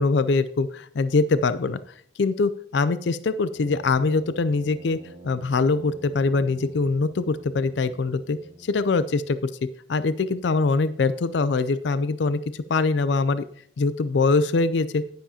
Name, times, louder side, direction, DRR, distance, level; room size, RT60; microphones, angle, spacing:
voice 1, 0.0-1.8 2.2-5.0 5.2-9.5 9.9-13.4 13.8-15.0, left 3 dB, 60° left, 13 dB, 0.4 m, -23 dB
Brass instrument, 3.5-9.4, right 2 dB, 25° right, 1.0 m, -48 dB
10.5 x 10.0 x 2.8 m, 0.63 s
head